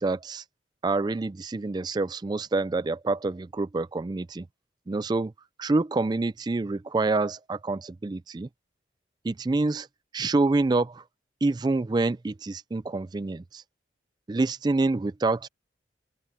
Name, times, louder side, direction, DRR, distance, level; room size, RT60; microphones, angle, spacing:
voice 1, 0.0-0.4 0.8-4.4 4.9-5.3 5.6-8.5 9.2-9.9 10.1-11.0 11.4-13.6 14.3-15.5, right 3 dB, 25° right, 0.3 m, -27 dB
open air
head